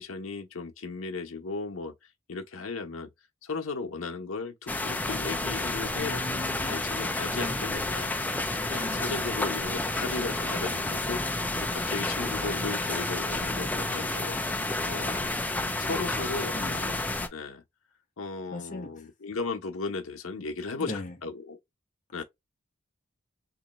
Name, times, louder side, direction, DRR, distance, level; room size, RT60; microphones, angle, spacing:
voice 1, 0.0-1.9 2.3-3.1 3.4-6.2 6.6-8.1 8.7-14.4 14.8-15.3 15.8-17.0 17.3-17.6 18.2-21.6 22.1-22.2, left 4 dB, 90° left, 0.8 m, -36 dB
sound 1, 4.7-17.3, left 2 dB, 10° left, 0.5 m, -30 dB
voice 2, 6.0-6.7 7.4-7.8 8.8-9.3 15.9-16.0 16.5-16.8 18.5-19.1 20.7-21.1, left 1 dB, 40° left, 0.8 m, -38 dB
sound 2, 8.2-15.2, equal, 10° right, 0.9 m, -45 dB
3.0 x 2.7 x 4.0 m
head